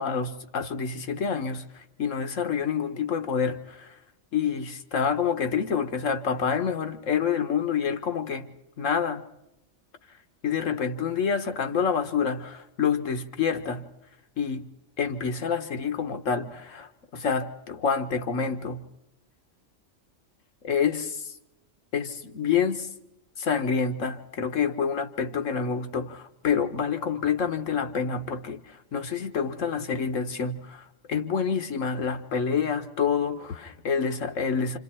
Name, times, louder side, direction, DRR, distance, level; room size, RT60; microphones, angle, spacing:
voice 1, 0.0-3.9 4.3-8.5 8.8-9.2 10.4-13.9 14.4-14.6 15.0-18.8 20.6-21.1 21.9-22.9 23.4-34.8, left 6 dB, 70° left, 1.6 m, -27 dB
28.0 x 27.0 x 4.4 m
omnidirectional pair, 1.4 m